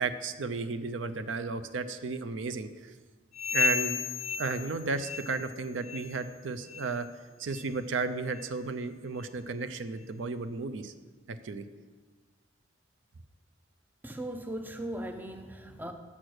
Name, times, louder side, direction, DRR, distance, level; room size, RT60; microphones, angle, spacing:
voice 1, 0.0-2.7 3.5-4.0 4.4-7.1 7.4-10.9 11.3-11.6, right 4 dB, 85° right, 10 dB, 0.5 m, -33 dB
sound 1, 3.3-5.6 5.8-6.2 6.7-6.9 7.5-7.7 8.4-8.5 9.2-9.3, left 6 dB, 35° left, 0.6 m, -33 dB
voice 2, 14.0-15.9, right 1 dB, 10° right, 7 dB, 0.4 m, -38 dB
7.3 x 6.5 x 6.1 m, 1.4 s
head